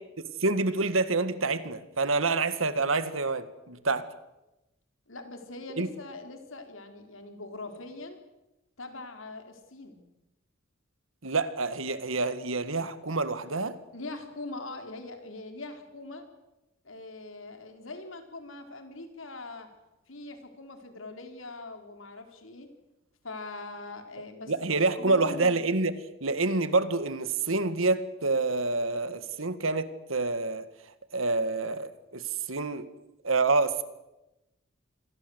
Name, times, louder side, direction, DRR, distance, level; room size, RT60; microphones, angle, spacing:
voice 1, 0.4-4.1 5.8-5.9 11.2-13.8 24.5-25.9 26.2-30.6 31.1-32.9 33.2-33.8, right 3 dB, 90° right, 13 dB, 1.9 m, -27 dB
voice 2, 5.1-8.2 8.8-10.0 13.9-16.2 16.8-19.7 20.1-22.7 23.2-24.7 25.0-25.6, left 2 dB, 80° left, 6 dB, 4.4 m, -42 dB
27.5 x 21.5 x 8.1 m, 0.98 s
head